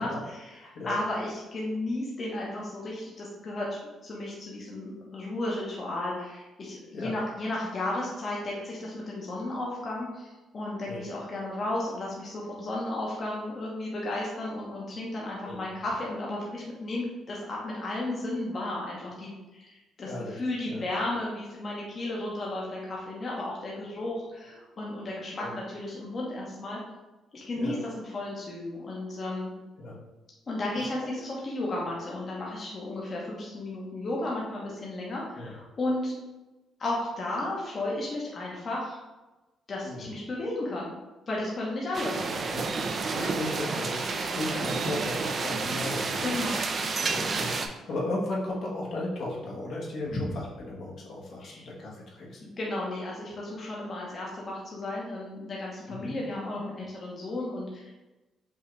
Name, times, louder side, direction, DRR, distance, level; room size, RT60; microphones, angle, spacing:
voice 1, 0.0-26.8 27.3-29.5 30.5-36.1 36.8-39.0 39.7-40.9 41.3-42.1 46.2-46.6 50.1-50.2 51.4-51.7 52.4-57.9, left 2 dB, 45° left, -4 dB, 0.9 m, -34 dB
voice 2, 20.0-20.4 20.7-20.8 25.4-25.6 27.5-27.8 29.8-30.0 31.0-31.1 35.3-35.5 39.8-40.1 42.5-42.7 43.1-46.3 47.0-52.4 55.9-56.1, left 1 dB, 65° left, -4 dB, 1.2 m, -35 dB
sound 1, 41.9-47.7, right 4 dB, 45° right, 0.5 m, -30 dB
5.4 x 2.4 x 3.1 m, 1.1 s
cardioid pair, 90°, 0 cm